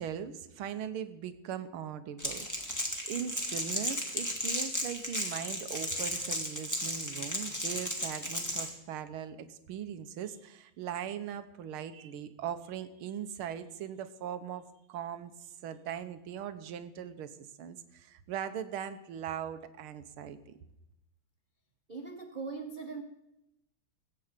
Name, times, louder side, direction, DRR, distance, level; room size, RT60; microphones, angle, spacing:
voice 1, 0.0-20.6, right 9 dB, 80° right, 11 dB, 1.8 m, -40 dB
Crackle, 2.2-8.7, equal, 10° left, 2.0 m, -34 dB
voice 2, 21.9-23.0, right 4 dB, 60° right, 5 dB, 0.5 m, -40 dB
21.5 x 8.5 x 5.1 m, 0.88 s
omnidirectional pair, 2.3 m